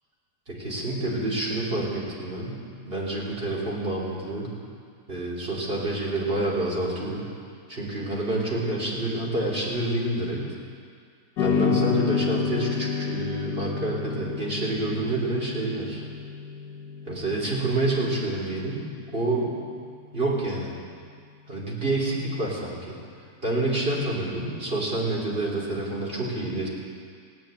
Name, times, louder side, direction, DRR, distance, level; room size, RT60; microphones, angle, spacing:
voice 1, 0.5-4.5 5.1-7.2 7.7-10.5 11.4-16.0 17.0-18.8 19.1-19.5 20.1-20.7 21.5-23.0 23.4-26.7, right 2 dB, 35° right, -5 dB, 3.6 m, -28 dB
sound 1, 11.4-19.9, left 6 dB, 85° left, 1.6 m, -30 dB
17.5 x 9.3 x 9.0 m, 2.1 s
omnidirectional pair, 1.7 m